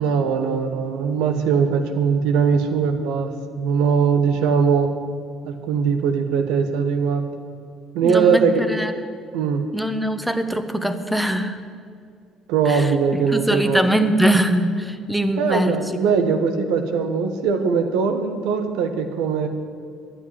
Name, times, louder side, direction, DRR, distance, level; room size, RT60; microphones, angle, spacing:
voice 1, 0.0-4.9 5.4-7.3 7.9-8.6 9.3-9.6 12.5-13.8 15.4-19.5, right 6 dB, 85° right, 7 dB, 1.3 m, -20 dB
voice 2, 8.0-8.9 9.7-11.6 12.6-12.9 13.3-15.8, right 1 dB, ahead, 9 dB, 1.1 m, -22 dB
11.0 x 9.1 x 9.7 m, 2.2 s
supercardioid pair, 90°, 0 cm